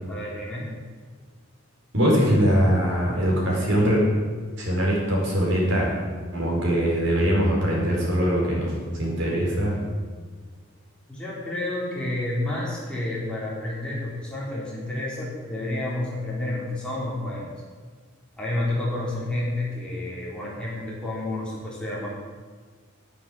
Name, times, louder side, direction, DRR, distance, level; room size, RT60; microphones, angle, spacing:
voice 1, 0.1-0.7 11.1-17.5 18.4-22.1, left 1 dB, 5° left, -7 dB, 3.8 m, -30 dB
voice 2, 1.9-4.0 4.6-5.9 6.3-9.8, equal, 60° right, -4 dB, 4.9 m, -22 dB
10.5 x 8.9 x 7.8 m, 1.5 s
head